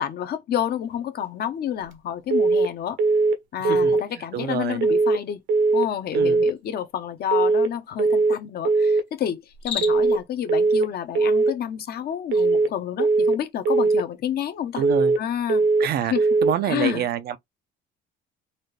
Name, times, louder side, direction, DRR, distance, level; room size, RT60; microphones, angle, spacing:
voice 1, 0.0-3.0 3.5-5.4 5.7-14.8 15.2-15.6 16.0-16.2 16.6-17.1, left 9 dB, 50° left, 0.8 m, -29 dB
sound 1, 2.3-2.7 3.0-3.4 3.6-4.0 4.8-5.2 5.5-5.9 6.1-6.5 7.3-7.7 8.0-8.4 8.6-9.0 9.8-10.2 10.5-10.9 11.1-11.5 12.3-12.7 13.0-13.4 13.7-14.0 14.8-15.2 15.5-15.9 16.2-16.6, right 3 dB, 75° right, 1.1 m, -19 dB
voice 2, 3.6-4.0 4.3-4.8 6.1-6.4 14.8-15.1 15.8-16.1 16.4-17.4, right 10 dB, 50° right, 0.6 m, -27 dB
Cricket, 9.5-10.2, left 8 dB, 70° left, 1.4 m, -32 dB
4.2 x 2.5 x 3.2 m
cardioid pair, 140°, 20 cm